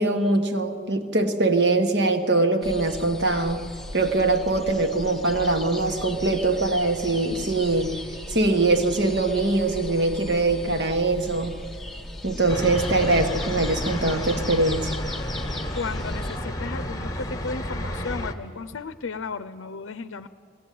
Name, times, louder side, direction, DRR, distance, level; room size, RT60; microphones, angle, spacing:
voice 1, 0.0-3.6 3.9-7.9 8.3-11.6 12.2-14.9, right 2 dB, 60° right, 6 dB, 1.5 m, -22 dB
sound 1, 2.6-16.4, left 1 dB, ahead, 0.8 m, -37 dB
sound 2, 12.5-18.3, left 1 dB, 20° left, 1.3 m, -31 dB
voice 2, 15.7-20.3, left 4 dB, 80° left, 10 dB, 0.6 m, -34 dB
21.5 x 17.5 x 9.3 m, 2.2 s
head